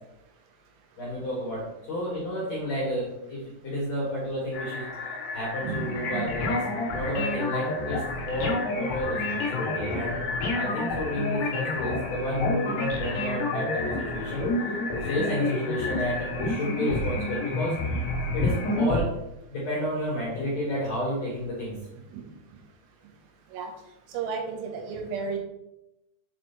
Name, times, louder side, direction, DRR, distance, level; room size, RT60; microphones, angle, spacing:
voice 1, 1.0-6.6 6.9-10.2 10.5-18.0 18.3-19.0 19.5-21.8, equal, 50° left, -6 dB, 2.2 m, -31 dB
sound 1, 4.5-18.8, left 3 dB, 65° left, 2.6 m, -36 dB
voice 2, 5.6-6.5 7.1-7.2 9.8-10.0 22.1-22.3 23.5-23.7 24.1-25.4, right 5 dB, 90° right, 2 dB, 3.9 m, -33 dB
sound 2, 6.3-19.0, left 2 dB, 85° left, 1.8 m, -30 dB
8.1 x 4.5 x 4.5 m, 0.90 s
omnidirectional pair, 6.0 m